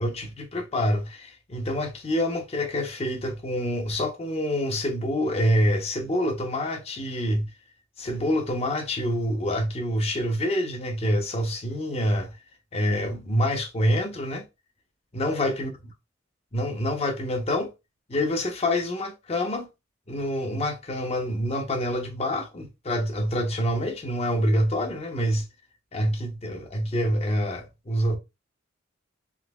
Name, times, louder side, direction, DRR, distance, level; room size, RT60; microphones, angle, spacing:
voice 1, 0.0-7.5 8.0-12.3 12.7-14.4 15.1-15.7 16.5-17.7 18.1-19.7 20.1-25.5 25.9-28.2, equal, 30° left, 0.6 m, -26 dB
3.8 x 2.8 x 2.2 m
head